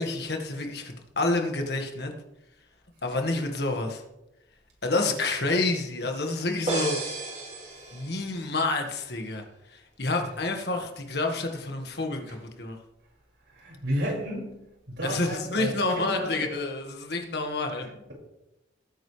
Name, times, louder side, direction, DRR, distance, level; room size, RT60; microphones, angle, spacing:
voice 1, 0.0-2.1 3.0-4.0 4.8-7.0 7.9-9.4 9.7-12.8 15.0-17.8, left 2 dB, 55° left, 3 dB, 1.7 m, -28 dB
sound 1, 6.7-8.5, right 2 dB, 35° right, 3.4 m, -33 dB
voice 2, 13.5-15.7 16.1-16.3 17.8-18.1, equal, 70° right, -3 dB, 5.7 m, -32 dB
18.5 x 9.4 x 3.3 m, 0.92 s
head